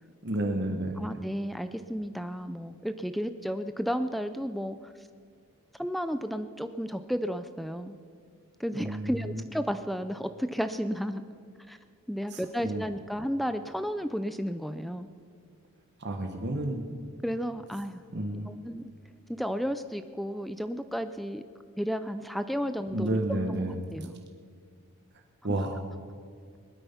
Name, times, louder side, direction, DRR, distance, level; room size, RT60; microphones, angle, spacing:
voice 1, 0.2-1.0 8.7-9.4 12.3-12.8 16.0-17.0 18.1-18.6 22.9-23.8 25.4-25.8, right 1 dB, 50° right, 3 dB, 1.3 m, -31 dB
voice 2, 1.0-4.9 5.8-8.0 8.6-11.2 11.7-11.8 12.1-15.1 17.2-18.0 18.5-18.9 19.3-21.4 21.8-23.2 23.5-23.6 23.9-24.2 25.5-25.6, equal, ahead, 10 dB, 0.4 m, -33 dB
20.0 x 12.5 x 5.7 m, 2.1 s
head